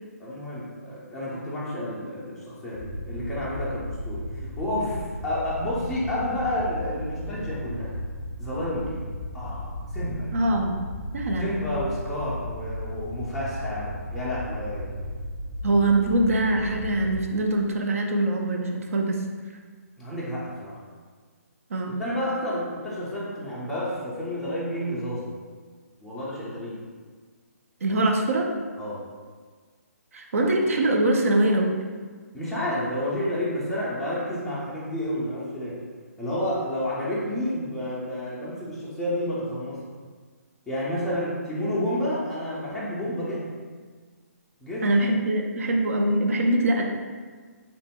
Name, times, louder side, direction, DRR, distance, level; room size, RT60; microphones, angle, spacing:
voice 1, 0.2-8.0 8.4-10.3 11.4-14.9 20.0-20.8 22.0-25.3 26.0-26.8 27.9-28.0 28.8-29.0 30.4-30.5 32.3-35.8 36.2-39.8 40.7-43.5 44.6-45.1, left 1 dB, ahead, -10 dB, 0.4 m, -30 dB
sound 1, 2.7-17.2, equal, 80° right, 1.5 m, -35 dB
voice 2, 10.3-10.9 11.1-11.5 15.6-19.2 21.7-22.0 27.8-28.5 30.1-31.8 44.8-46.8, right 1 dB, 60° right, 2 dB, 0.4 m, -23 dB
2.9 x 2.1 x 3.4 m, 1.5 s
figure-of-eight pair, 140°, 9 cm